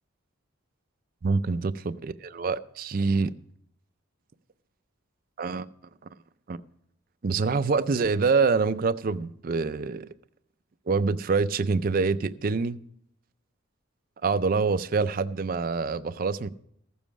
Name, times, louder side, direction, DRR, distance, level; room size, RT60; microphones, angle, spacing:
voice 1, 1.2-3.3 5.4-5.7 6.5-6.6 7.2-10.1 10.9-12.8 14.2-16.5, right 4 dB, 45° right, 0.4 m, -26 dB
14.0 x 7.1 x 6.1 m
head